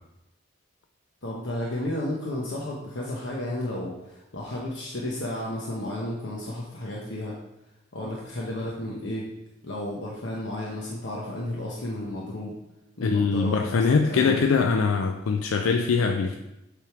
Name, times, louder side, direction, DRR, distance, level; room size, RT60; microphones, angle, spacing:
voice 1, 1.2-7.3 7.9-9.3 9.6-12.5 13.0-13.6 14.1-14.4, left 1 dB, 60° left, -3 dB, 0.9 m, -32 dB
voice 2, 13.0-16.4, left 5 dB, 85° left, 4 dB, 0.4 m, -22 dB
7.5 x 3.5 x 4.7 m, 0.93 s
head